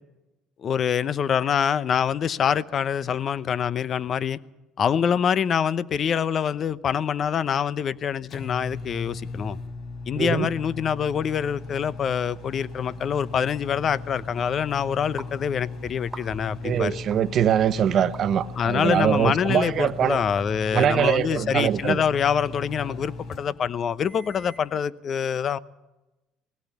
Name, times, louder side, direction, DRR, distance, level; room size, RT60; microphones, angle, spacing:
voice 1, 0.6-4.4 4.8-9.6 10.1-17.0 18.6-25.6, left 8 dB, 45° left, 0.8 m, -25 dB
sound 1, 7.7-24.7, left 3 dB, 60° left, 5.1 m, -38 dB
voice 2, 10.2-10.5 16.6-20.2 20.7-22.0, right 9 dB, 50° right, 1.0 m, -23 dB
sound 2, 15.2-15.3 16.0-16.5 17.1-17.2 18.1-18.2 19.1-19.3 20.1-20.2 21.0-21.1, right 3 dB, 15° right, 1.9 m, -41 dB
20.5 x 17.0 x 8.4 m
supercardioid pair, 90°, 0 cm